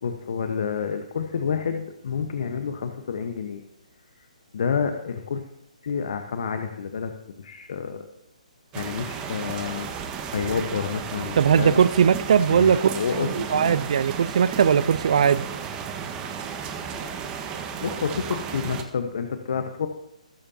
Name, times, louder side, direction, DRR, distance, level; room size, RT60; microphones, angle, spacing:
voice 1, 0.0-3.6 4.5-5.4 5.8-7.1 7.4-8.0 8.7-11.8 12.5-13.8 17.8-19.9, left 6 dB, 60° left, 1.2 m, -29 dB
sound 1, 8.7-18.8, right 7 dB, 20° right, 1.4 m, -34 dB
voice 2, 11.4-15.5, right 7 dB, 55° right, 0.5 m, -20 dB
19.5 x 8.8 x 2.8 m
figure-of-eight pair, 135°, 4 cm